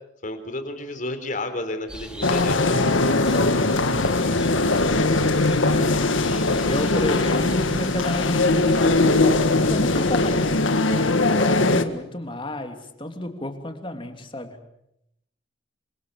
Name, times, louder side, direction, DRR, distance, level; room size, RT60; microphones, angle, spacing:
voice 1, 0.2-2.8, left 1 dB, 45° left, 8 dB, 4.0 m, -31 dB
sound 1, 1.9-10.7, equal, 5° right, 2.8 m, -39 dB
sound 2, 2.2-11.8, left 2 dB, 85° left, 1.8 m, -20 dB
voice 2, 4.6-4.9 5.3-6.1 6.6-10.6 11.3-14.6, left 1 dB, 25° left, 6 dB, 3.1 m, -32 dB
28.5 x 25.0 x 7.2 m, 0.80 s
head